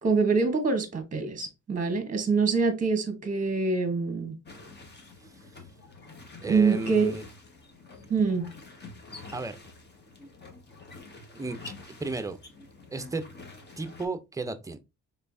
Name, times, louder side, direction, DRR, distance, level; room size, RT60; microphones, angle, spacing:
voice 1, 0.0-4.3 6.4-7.1 8.1-8.5, right 4 dB, 25° right, 1.1 m, -25 dB
sound 1, 4.4-14.1, left 3 dB, 35° left, 1.4 m, -47 dB
voice 2, 6.4-7.2 9.3-9.6 11.3-11.6 11.8-12.4 12.9-13.3 13.8-14.8, right 3 dB, 10° right, 0.6 m, -33 dB
4.3 x 3.5 x 2.6 m
cardioid pair, 90°, 30 cm